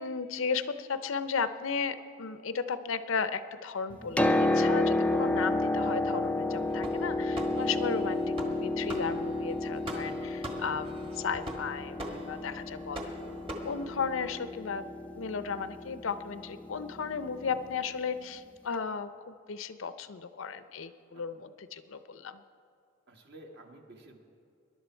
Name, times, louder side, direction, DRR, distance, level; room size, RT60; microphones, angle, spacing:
voice 1, 0.0-13.3 13.6-14.8 15.1-22.4, left 5 dB, 70° left, 12 dB, 0.6 m, -35 dB
Piano, 3.9-17.6 18.7-18.8, left 2 dB, 5° left, 0.3 m, -31 dB
sound 1, 6.5-14.4, right 1 dB, 25° right, 1.3 m, -43 dB
voice 2, 10.0-10.6 21.1-21.2 23.1-24.2, right 1 dB, 50° right, 2 dB, 1.5 m, -52 dB
20.0 x 11.0 x 4.5 m, 2.5 s
head